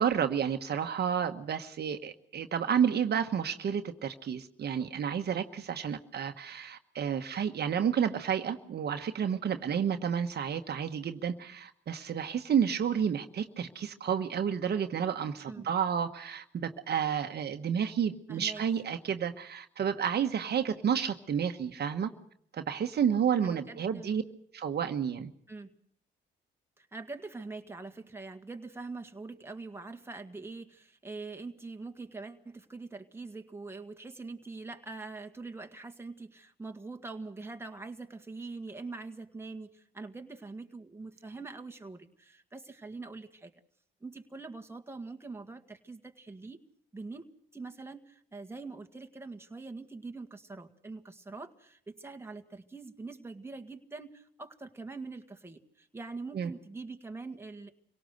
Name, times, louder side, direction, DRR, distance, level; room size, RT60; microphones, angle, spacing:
voice 1, 0.0-22.1 22.5-24.2 24.5-25.3 56.3-56.5, right 8 dB, 55° right, 7 dB, 1.3 m, -30 dB
voice 2, 18.3-18.6 23.4-24.2 25.5-25.7 26.8-43.5 44.0-46.6 46.9-47.3 47.5-57.7, right 3 dB, 10° right, 5 dB, 1.8 m, -44 dB
26.0 x 18.0 x 6.6 m, 0.66 s
cardioid pair, 90°, 20 cm